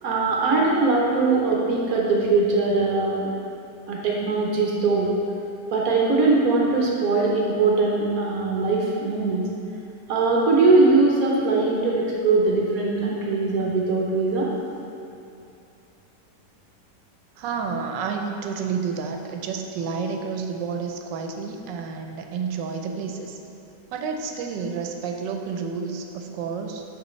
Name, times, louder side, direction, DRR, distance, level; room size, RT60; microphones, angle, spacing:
voice 1, 0.0-3.3 3.9-5.1 5.7-9.4 10.1-14.5, right 3 dB, 65° right, -3 dB, 1.1 m, -21 dB
voice 2, 17.4-23.4 23.9-26.8, right 5 dB, 90° right, 3 dB, 1.3 m, -30 dB
6.4 x 5.3 x 3.1 m, 2.7 s
omnidirectional pair, 1.9 m